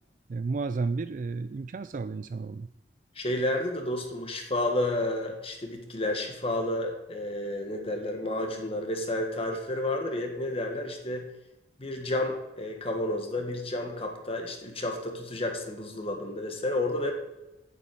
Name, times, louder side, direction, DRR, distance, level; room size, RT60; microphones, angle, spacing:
voice 1, 0.3-2.7, right 4 dB, 45° right, 12 dB, 0.3 m, -32 dB
voice 2, 3.1-11.2 11.8-17.1, left 1 dB, 35° left, 3 dB, 1.6 m, -31 dB
8.3 x 7.4 x 8.4 m, 0.97 s
head